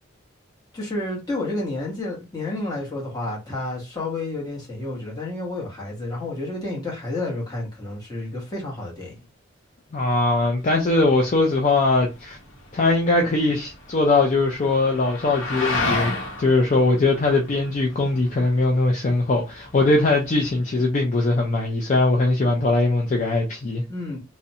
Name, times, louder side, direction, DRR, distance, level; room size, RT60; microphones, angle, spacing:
voice 1, 0.7-9.2 23.9-24.2, left 2 dB, 20° left, 0.9 m, -30 dB
voice 2, 9.9-12.4 12.7-16.1 16.4-23.8, left 2 dB, 40° left, 0.4 m, -20 dB
sound 1, 10.6-20.5, left 2 dB, 85° left, 0.8 m, -33 dB
2.5 x 2.1 x 2.7 m
head